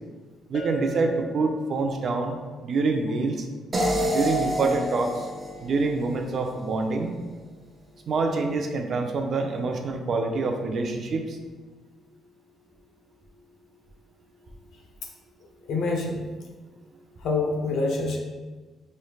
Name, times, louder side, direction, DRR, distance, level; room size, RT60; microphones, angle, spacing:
Bell, 0.5-2.2, right 3 dB, 45° left, 0.7 m, -38 dB
voice 1, 0.5-2.4 2.6-3.5 4.1-5.3 5.6-7.1 8.1-11.4, right 3 dB, 55° right, 4 dB, 0.5 m, -26 dB
sound 1, 3.7-6.8, equal, 30° right, 0.8 m, -28 dB
voice 2, 15.7-16.2 17.2-18.2, left 3 dB, 80° left, 0 dB, 0.8 m, -26 dB
5.4 x 3.2 x 2.3 m, 1.3 s
cardioid pair, 90°, 0 cm